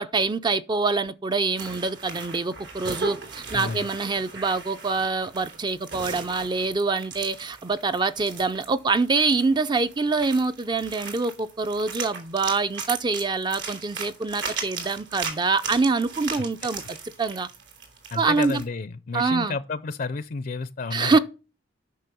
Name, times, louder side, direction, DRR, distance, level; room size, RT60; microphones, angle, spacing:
voice 1, 0.0-16.8 17.2-17.5 18.2-18.6 19.1-19.6 20.9-21.2, right 4 dB, 25° right, 0.4 m, -25 dB
sound 1, 1.6-18.6, right 5 dB, 80° right, 3.0 m, -37 dB
voice 2, 3.5-3.9 16.3-16.4 18.1-21.2, left 4 dB, 50° left, 0.5 m, -31 dB
9.3 x 5.9 x 6.8 m
head